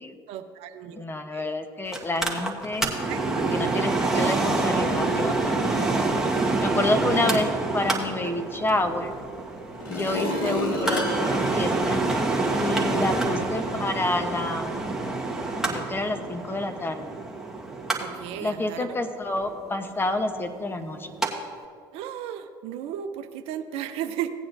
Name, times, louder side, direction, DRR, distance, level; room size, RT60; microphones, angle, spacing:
voice 1, 0.3-1.0 1.3-1.5 3.1-3.4 4.0-4.1 8.2-8.4 10.1-10.6 12.9-13.2 18.0-19.0 21.9-24.3, right 10 dB, 60° right, 8 dB, 0.7 m, -35 dB
voice 2, 0.9-2.9 3.5-6.1 6.6-9.1 9.9-12.0 12.5-14.8 15.7-17.1 18.4-21.1, left 2 dB, 20° left, 7 dB, 1.0 m, -29 dB
Mechanical fan, 1.9-21.3 21.6-21.7, right 3 dB, 5° right, 1.6 m, -27 dB
sound 1, 9.0-9.1 9.7-12.6 13.1-13.2, left 2 dB, 85° left, 2.1 m, -30 dB
17.0 x 8.7 x 2.7 m, 2.3 s
hypercardioid pair, 75°, 11 cm